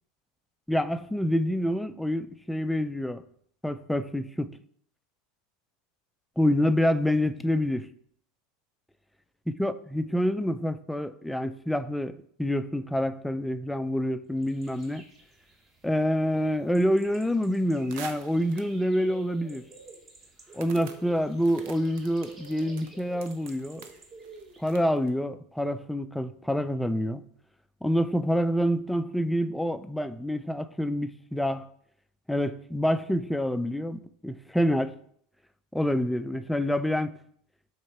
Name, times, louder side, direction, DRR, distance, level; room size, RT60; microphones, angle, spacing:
voice 1, 0.7-3.2 3.6-4.5 6.4-7.9 9.5-15.0 15.8-19.6 20.5-23.8 24.6-27.2 27.8-31.7 32.3-34.9 35.7-37.2, equal, 5° left, 0.3 m, -27 dB
sound 1, 14.4-24.7, right 3 dB, 30° right, 1.1 m, -51 dB
sound 2, 17.9-18.8 19.5-19.6 20.6-25.1, right 7 dB, 70° right, 0.7 m, -46 dB
6.5 x 3.6 x 4.3 m
supercardioid pair, 125°, 0 cm